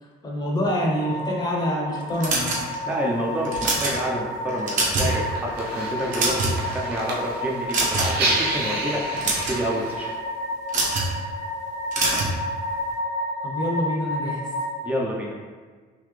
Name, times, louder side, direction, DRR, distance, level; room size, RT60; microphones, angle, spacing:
voice 1, 0.2-2.6 13.4-14.4, equal, 25° left, -2 dB, 0.8 m, -26 dB
sound 1, 0.6-14.7, left 1 dB, 85° left, 1.2 m, -31 dB
sound 2, 2.2-2.9 3.4-4.0 4.5-5.2 5.5-5.6 6.0-6.7 7.7-8.2 9.0-9.6 10.7-11.1 11.9-12.3, right 2 dB, 50° right, 1.0 m, -24 dB
voice 2, 2.9-10.1 14.8-15.3, right 1 dB, 10° right, -2 dB, 0.6 m, -28 dB
sound 3, 5.1-10.1, right 2 dB, 70° right, 0.8 m, -30 dB
3.9 x 2.6 x 3.2 m, 1.5 s
cardioid pair, 110°, 17 cm